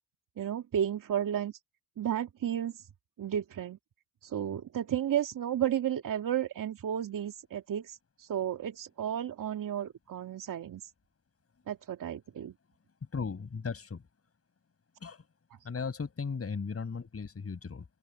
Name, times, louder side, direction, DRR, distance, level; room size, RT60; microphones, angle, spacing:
voice 1, 0.4-1.5 2.0-2.8 3.2-3.8 4.2-10.9 11.7-12.5, right 10 dB, 55° right, 2.4 m, -33 dB
voice 2, 13.1-14.0 15.0-15.2 15.6-17.9, left 5 dB, 35° left, 7.2 m, -36 dB
open air
supercardioid pair, 60°, 39 cm